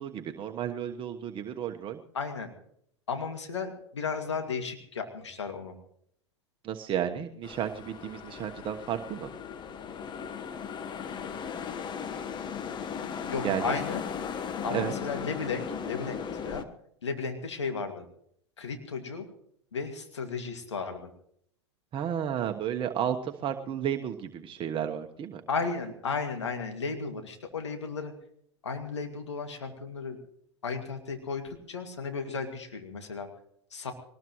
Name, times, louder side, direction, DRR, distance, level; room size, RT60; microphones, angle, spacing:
voice 1, 0.0-2.0 6.6-9.3 13.4-13.7 14.7-14.9 21.9-25.4, right 9 dB, 35° right, 5 dB, 1.3 m, -32 dB
voice 2, 2.1-2.5 3.1-5.7 13.3-14.0 14.6-16.2 16.4-16.6 17.0-18.1 18.6-19.3 19.7-21.1 25.5-28.1 28.6-30.2 30.6-33.3 33.7-33.9, left 5 dB, 85° left, 5 dB, 2.3 m, -34 dB
sound 1, 7.4-16.6, left 7 dB, 30° left, 1.3 m, -37 dB
23.0 x 19.5 x 3.1 m, 0.68 s
hypercardioid pair, 90°, 14 cm